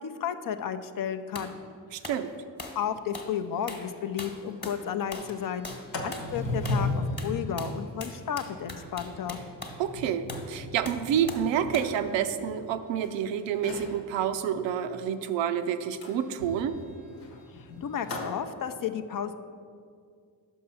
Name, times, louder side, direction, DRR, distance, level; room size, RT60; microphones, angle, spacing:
voice 1, 0.0-1.6 2.8-5.7 6.0-9.4 17.5-19.4, left 8 dB, 50° left, 9 dB, 0.5 m, -33 dB
sound 1, 1.4-1.5 2.0-2.2 2.6-2.8 3.1-3.3 3.7-3.9 4.2-4.8 5.1-5.4 5.6-5.9 6.1-6.3 6.7-6.9 7.2-9.8 10.3-10.5 10.9-11.5 11.7-12.0, left 2 dB, 25° left, 1.2 m, -41 dB
voice 2, 1.9-2.3 9.8-16.8, right 8 dB, 75° right, 10 dB, 0.5 m, -28 dB
Sliding door, 3.5-3.6 4.0-4.1 4.4-4.7 5.1-13.1 13.5-14.0 16.0-18.4, left 2 dB, 75° left, 1.1 m, -37 dB
5.6 x 5.5 x 5.5 m, 2.2 s
supercardioid pair, 50°, 44 cm